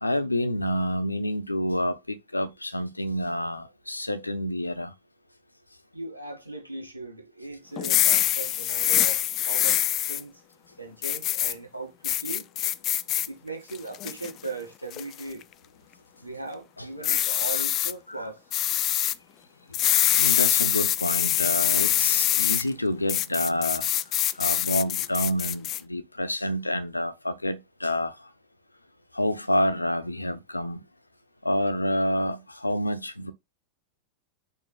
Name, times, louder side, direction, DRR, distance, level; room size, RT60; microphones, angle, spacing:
voice 1, 0.0-4.9 16.8-17.2 17.5-17.6 18.1-18.3 20.2-23.9 24.4-28.2 29.1-30.8 31.4-33.3, left 1 dB, 85° left, 0.9 m, -28 dB
voice 2, 5.9-10.4 10.8-12.5 13.3-15.4 16.2-18.4, right 2 dB, 90° right, 2.1 m, -38 dB
sound 1, 7.8-10.2 11.0-11.5 12.0-13.3 13.7-14.3 14.9-15.2 17.0-17.9 18.5-19.1 19.7-22.6 23.1-25.8, left 13 dB, 35° left, 0.4 m, -24 dB
5.6 x 4.5 x 5.7 m
figure-of-eight pair, 90°, 0 cm